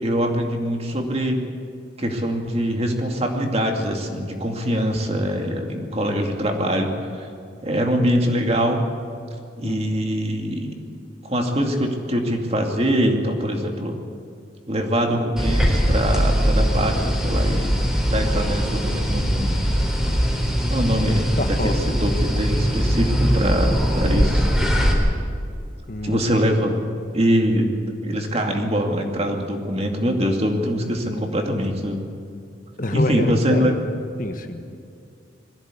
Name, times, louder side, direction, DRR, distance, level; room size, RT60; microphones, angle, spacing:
voice 1, 0.0-1.4 2.0-7.3 7.6-8.8 9.6-10.7 11.2-14.0 14.7-17.7 18.1-19.6 20.7-21.3 21.6-24.8 26.0-26.8 27.1-27.7 28.0-32.0 32.9-33.7, equal, 35° right, 3 dB, 2.4 m, -23 dB
voice 2, 9.6-10.1 21.4-21.9 23.6-23.8 25.9-26.2 32.8-33.7 34.2-34.8, left 1 dB, 45° left, 6 dB, 1.4 m, -28 dB
sound 1, 15.4-24.9, equal, 5° right, 3.5 m, -21 dB
21.5 x 15.5 x 8.4 m, 2.4 s
head